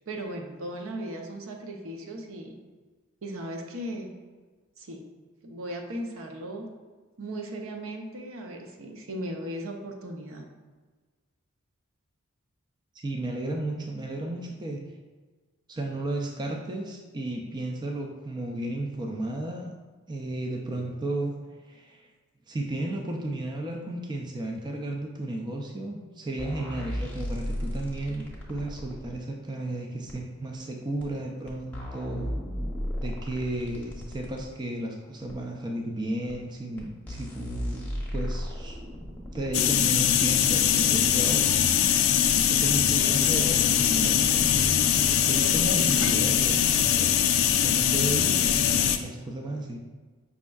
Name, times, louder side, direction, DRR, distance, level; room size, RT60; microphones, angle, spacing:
voice 1, 0.0-2.6 3.2-4.1 4.8-5.0 5.4-6.7 7.2-10.5, right 1 dB, 70° right, 3 dB, 0.6 m, -37 dB
voice 2, 13.0-14.8 15.7-19.7 20.1-21.3 21.7-22.1 22.5-32.3 33.0-38.8 39.3-41.5 42.5-44.7 45.3-46.6 47.0-47.2 47.6-49.8, right 1 dB, 20° right, 0 dB, 0.3 m, -33 dB
sound 1, 26.4-29.1 30.1-30.2 31.0-31.1 31.5-34.4 35.3-35.4 36.3-36.4 36.8-36.9 37.1-39.8 40.8-40.9, equal, 10° left, 0.8 m, -34 dB
sound 2, 39.5-49.0, left 9 dB, 65° left, 0.3 m, -22 dB
5.2 x 3.5 x 2.3 m, 1.4 s
head